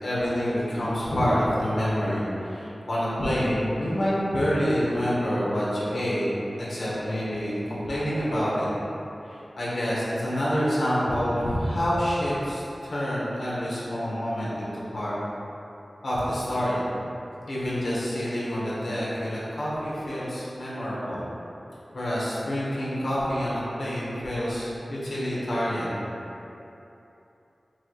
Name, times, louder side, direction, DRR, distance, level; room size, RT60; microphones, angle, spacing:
voice 1, 0.0-6.3 6.6-8.7 9.2-15.2 16.0-16.9 17.5-21.2 21.9-26.0, equal, 85° left, -8 dB, 1.1 m, -27 dB
5.9 x 3.1 x 2.4 m, 2.9 s
wide cardioid pair, 75°, 0 cm